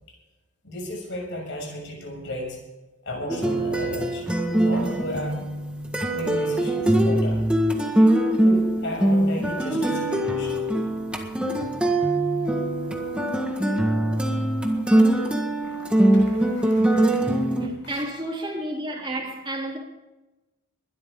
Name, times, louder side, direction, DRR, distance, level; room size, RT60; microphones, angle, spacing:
voice 1, 0.6-2.6 3.0-4.3 4.6-5.4 6.1-7.5 8.4-10.6 15.6-16.8 17.6-17.8, equal, 55° left, 6.6 m, -34 dB
sound 1, 3.3-17.7, right 1 dB, 5° right, 1.6 m, -22 dB
voice 2, 17.5-19.8, right 1 dB, 20° right, 3.1 m, -31 dB
22.0 x 12.5 x 3.8 m
head